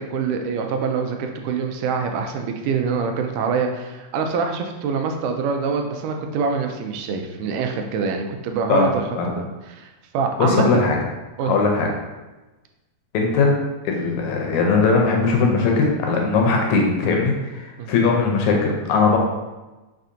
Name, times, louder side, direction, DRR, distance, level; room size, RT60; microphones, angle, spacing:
voice 1, 0.0-10.9 11.4-11.5 17.8-17.9, right 5 dB, 85° right, 4 dB, 2.0 m, -25 dB
voice 2, 10.4-11.0 11.4-11.9 13.1-13.5 13.8-19.2, left 4 dB, 75° left, 0 dB, 1.9 m, -19 dB
5.5 x 3.3 x 2.6 m, 1.1 s
omnidirectional pair, 3.6 m